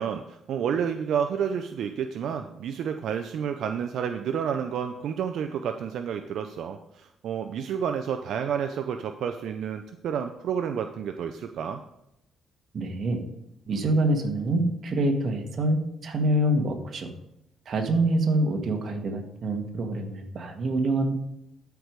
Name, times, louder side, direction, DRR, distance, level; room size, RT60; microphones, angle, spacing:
voice 1, 0.0-11.8, right 7 dB, 75° right, 7 dB, 0.6 m, -30 dB
voice 2, 12.7-13.2 13.7-17.1 17.6-21.1, right 1 dB, 55° right, 3 dB, 1.7 m, -26 dB
12.5 x 4.8 x 5.2 m, 0.83 s
cardioid pair, 90°, 0 cm